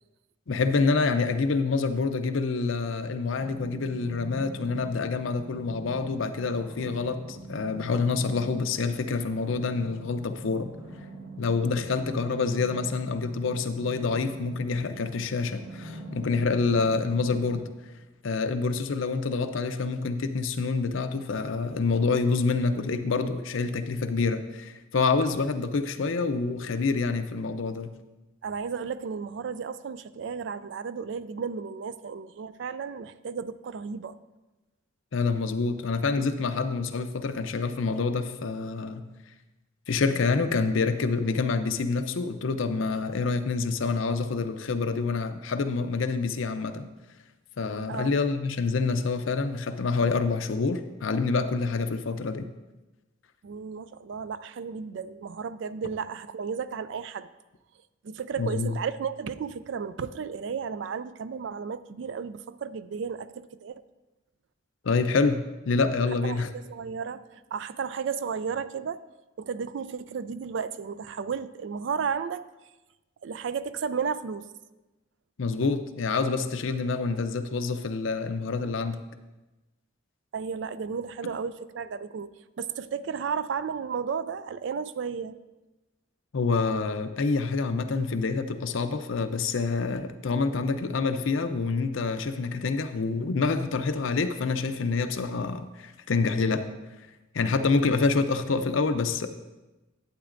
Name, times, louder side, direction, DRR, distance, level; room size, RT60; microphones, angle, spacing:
voice 1, 0.5-10.7 11.4-17.7 18.2-27.9 35.1-39.0 39.9-46.9 47.6-52.5 58.4-58.8 64.8-66.5 75.4-79.0 86.3-96.7 97.3-99.3, left 4 dB, 80° left, 9 dB, 0.6 m, -27 dB
sound 1, 3.3-17.7, right 1 dB, 25° right, 1.6 m, -44 dB
voice 2, 28.4-34.2 47.9-48.1 53.4-57.3 58.0-63.8 66.2-69.0 69.4-72.5 73.2-74.5 80.3-82.3 82.6-85.4, right 6 dB, 65° right, 14 dB, 0.3 m, -33 dB
12.0 x 8.1 x 2.5 m, 1.1 s
head